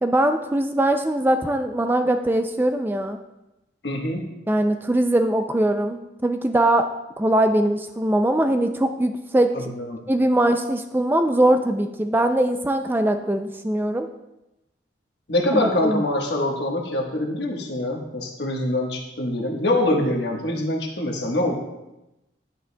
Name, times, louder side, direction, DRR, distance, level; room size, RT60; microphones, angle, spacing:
voice 1, 0.0-3.2 4.5-6.9 7.2-9.7 10.1-14.1 15.5-16.0, right 1 dB, 10° right, 6 dB, 0.3 m, -21 dB
voice 2, 3.8-4.3 9.5-10.0 15.3-21.5, left 1 dB, 65° left, 1 dB, 1.3 m, -24 dB
10.0 x 8.5 x 2.2 m, 0.94 s
head